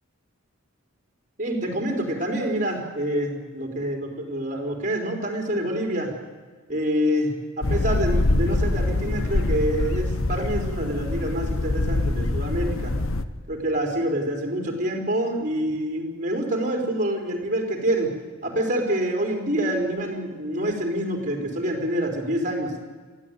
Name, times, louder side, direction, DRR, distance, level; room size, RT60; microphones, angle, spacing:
voice 1, 1.4-6.1 6.7-12.9 13.5-18.1 18.4-22.7, right 1 dB, 35° right, 2 dB, 4.4 m, -26 dB
sound 1, 7.6-13.3, left 2 dB, 65° left, 1.1 m, -24 dB
24.0 x 15.0 x 9.4 m, 1.4 s
head